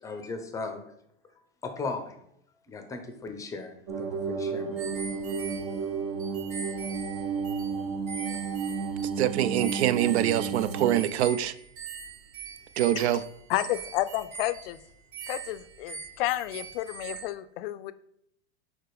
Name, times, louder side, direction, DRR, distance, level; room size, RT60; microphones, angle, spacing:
voice 1, 0.0-0.8 1.6-2.2 2.7-4.9 6.2-6.3, left 3 dB, 10° left, 0.5 m, -37 dB
sound 1, 3.9-11.0, right 5 dB, 60° right, 1.1 m, -32 dB
sound 2, 4.8-9.3 9.5-17.3, right 5 dB, 30° right, 0.7 m, -42 dB
voice 2, 9.2-11.5 12.8-13.2, right 12 dB, 80° right, 0.5 m, -24 dB
voice 3, 13.5-14.8 15.3-17.9, left 15 dB, 60° left, 0.4 m, -31 dB
5.1 x 4.2 x 4.6 m
supercardioid pair, 145°, 33 cm